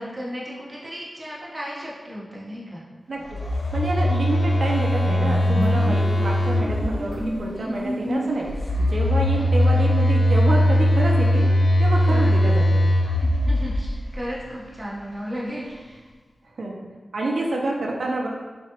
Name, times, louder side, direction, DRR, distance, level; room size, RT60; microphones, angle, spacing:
voice 1, 0.0-2.8 7.6-7.9 12.1-12.4 13.1-16.0, equal, 20° right, -6 dB, 1.0 m, -35 dB
voice 2, 3.1-3.4 3.7-8.5 8.8-11.5 11.8-12.8 16.6-16.8 17.1-18.3, right 2 dB, 65° right, -1 dB, 0.5 m, -27 dB
Telephone, 3.3-7.3 8.4-14.1, left 1 dB, 65° left, 0.4 m, -20 dB
sound 1, 4.3-4.4 4.7-8.7, equal, 40° left, 1.1 m, -30 dB
3.6 x 3.2 x 2.9 m, 1.3 s
wide cardioid pair, 120°, 0 cm